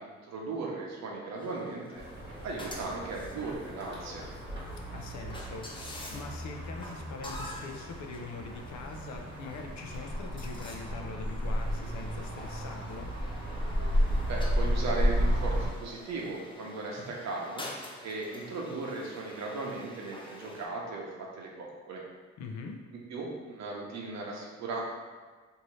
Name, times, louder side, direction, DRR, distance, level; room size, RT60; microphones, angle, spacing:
voice 1, 0.0-2.0 2.4-4.2 14.3-17.6 18.0-22.0 22.9-24.8, right 3 dB, 60° right, -2 dB, 0.8 m, -37 dB
sound 1, 1.3-20.7, left 1 dB, 15° left, 0.5 m, -48 dB
sound 2, 1.9-15.7, equal, 35° right, 1.1 m, -33 dB
voice 2, 4.9-13.1 22.4-22.8, left 4 dB, 65° left, 2 dB, 0.5 m, -43 dB
2.7 x 2.6 x 3.1 m, 1.5 s
cardioid pair, 90°, 30 cm